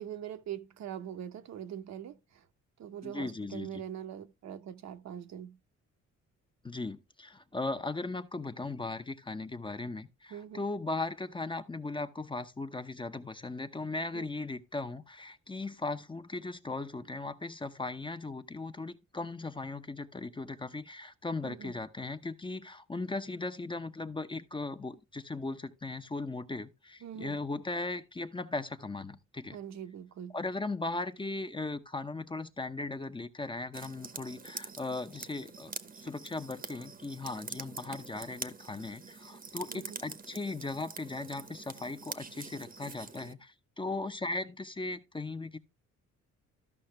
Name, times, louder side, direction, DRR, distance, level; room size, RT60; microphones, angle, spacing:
voice 1, 0.0-2.5 2.8-5.6 10.3-10.6 14.1-14.3 21.4-21.7 27.0-27.4 29.5-30.4 39.7-40.0, right 9 dB, 65° right, 0.9 m, -42 dB
voice 2, 3.0-3.7 6.6-29.6 30.3-35.7 36.0-45.6, left 3 dB, 15° left, 0.7 m, -38 dB
sound 1, 33.7-43.3, right 5 dB, 30° right, 0.9 m, -45 dB
13.5 x 5.6 x 3.3 m
cardioid pair, 90°, 30 cm